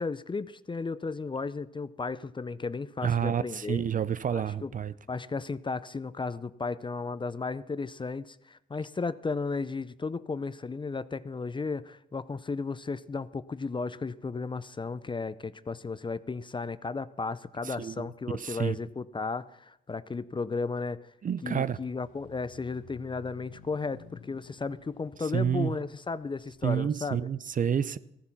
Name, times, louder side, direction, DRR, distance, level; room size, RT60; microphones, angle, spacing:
voice 1, 0.0-3.8 4.3-4.7 5.1-21.1 21.4-27.3, left 4 dB, 25° left, 0.5 m, -34 dB
voice 2, 3.0-4.9 17.6-18.1 18.3-18.8 21.2-21.8 25.3-25.7 26.6-28.0, right 8 dB, 40° right, 0.5 m, -29 dB
sound 1, 21.7-26.6, left 7 dB, 80° left, 0.9 m, -54 dB
15.0 x 9.6 x 5.8 m
supercardioid pair, 60°, 20 cm